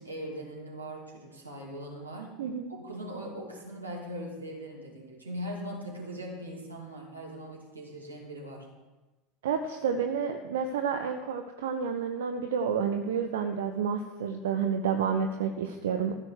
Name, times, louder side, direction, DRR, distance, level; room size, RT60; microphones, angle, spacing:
voice 1, 0.0-2.3 2.7-8.7, equal, 90° right, -2 dB, 2.6 m, -40 dB
voice 2, 2.4-2.7 9.4-16.1, right 6 dB, 65° right, 7 dB, 0.8 m, -30 dB
14.5 x 6.3 x 6.5 m, 1.2 s
figure-of-eight pair, 75°, 0 cm